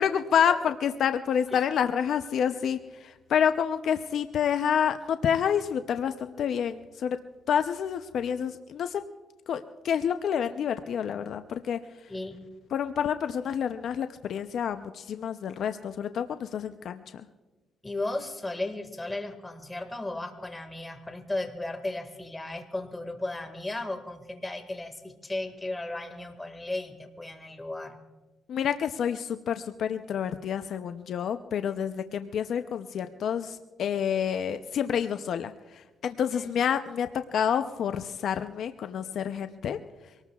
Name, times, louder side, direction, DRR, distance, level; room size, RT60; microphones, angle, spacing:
voice 1, 0.0-7.2 7.5-9.0 9.5-11.8 12.7-17.0 28.5-39.8, left 8 dB, 65° left, 9 dB, 0.6 m, -28 dB
voice 2, 12.1-12.4 17.8-28.0 36.3-36.5, left 2 dB, 15° left, 6 dB, 1.8 m, -35 dB
24.5 x 19.0 x 2.4 m, 1.2 s
cardioid pair, 90°, 0 cm